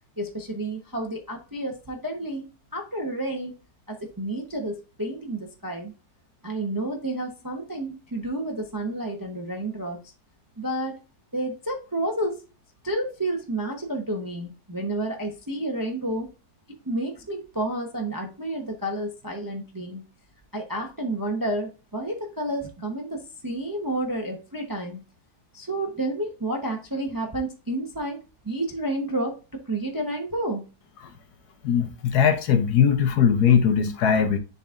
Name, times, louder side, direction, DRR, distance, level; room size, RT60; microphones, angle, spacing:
voice 1, 0.2-2.4 2.7-3.5 3.9-5.9 6.4-10.0 10.6-10.9 11.3-12.4 12.8-16.3 16.9-20.0 20.5-25.0 25.5-28.2 28.4-29.3 29.7-30.6, right 1 dB, 20° right, 0.6 m, -30 dB
voice 2, 31.6-34.4, left 7 dB, 70° left, 1.2 m, -20 dB
10.5 x 4.1 x 2.5 m
omnidirectional pair, 1.9 m